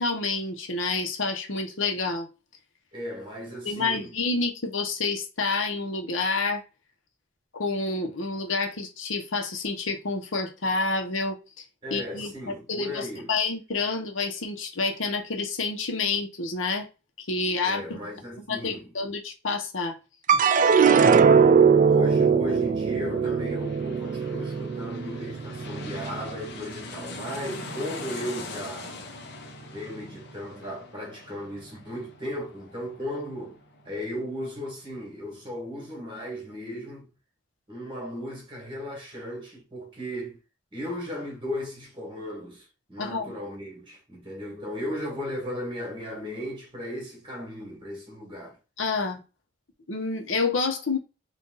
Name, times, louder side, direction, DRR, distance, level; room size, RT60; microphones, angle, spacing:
voice 1, 0.0-2.3 3.6-6.6 7.5-11.6 11.9-16.9 17.2-18.0 18.5-20.0 20.3-20.4 43.0-43.3 48.8-49.2 49.9-51.0, left 3 dB, 85° left, 1.1 m, -28 dB
voice 2, 2.9-4.1 11.8-13.3 17.6-18.9 20.7-21.2 21.7-29.0 29.7-33.6 33.8-37.1 37.7-40.4 40.7-48.6, left 1 dB, 25° right, 2.0 m, -36 dB
sound 1, 20.3-26.7 27.2-27.9, right 6 dB, 40° right, 0.3 m, -21 dB
sound 2, 23.1-34.4 34.8-34.9, left 4 dB, 55° left, 0.9 m, -43 dB
4.1 x 2.6 x 3.9 m
head